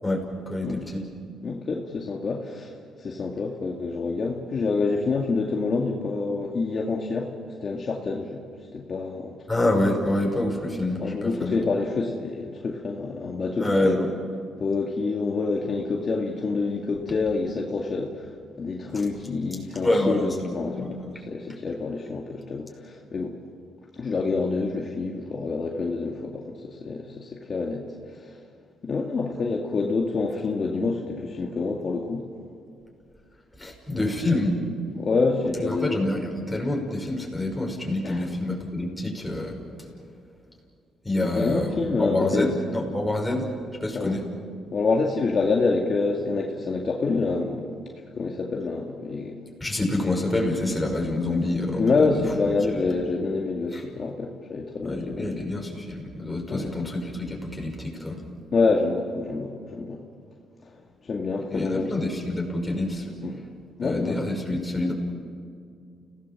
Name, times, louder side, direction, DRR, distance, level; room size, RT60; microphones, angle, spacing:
voice 1, 0.0-1.1 9.5-11.6 13.6-14.1 19.8-21.1 33.6-34.6 35.7-39.6 41.0-43.5 43.8-44.2 49.6-52.2 52.7-52.9 53.7-53.8 54.8-58.2 61.5-63.4 63.8-64.9, left 1 dB, 10° left, 0 dB, 6.1 m, -27 dB
voice 2, 1.4-2.7 3.0-7.3 7.6-8.4 8.7-9.3 11.0-14.1 14.6-18.3 18.6-23.4 24.0-28.4 28.8-32.3 35.0-36.1 38.0-38.3 41.2-42.5 43.9-44.2 44.7-47.8 48.2-49.4 51.8-55.4 56.5-56.7 58.5-60.0 61.0-61.9 63.2-63.4 63.8-64.2, left 4 dB, 45° left, 0 dB, 2.2 m, -27 dB
30.0 x 18.0 x 7.5 m, 2.3 s
cardioid pair, 90°, 0 cm